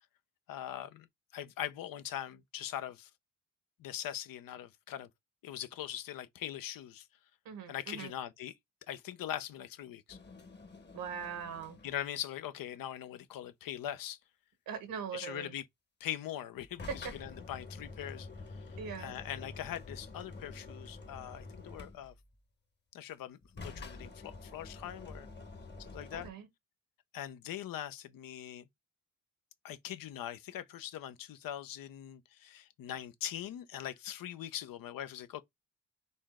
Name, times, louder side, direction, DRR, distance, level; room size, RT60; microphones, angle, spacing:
voice 1, 0.5-1.1 1.3-3.1 3.8-5.1 5.4-7.1 7.7-8.5 8.9-10.2 11.8-14.2 15.1-15.6 16.0-22.1 22.9-25.3 25.8-26.3 27.1-28.7 29.6-35.4, left 11 dB, 70° left, 0.8 m, -42 dB
voice 2, 7.4-8.1 10.9-11.8 14.7-15.5 16.9-17.1 18.8-19.1 26.1-26.5, right 6 dB, 75° right, 1.5 m, -41 dB
sound 1, 10.1-12.1 16.5-22.3 23.4-26.3, left 3 dB, 30° left, 1.1 m, -48 dB
4.3 x 3.2 x 3.5 m
cardioid pair, 75°, 35 cm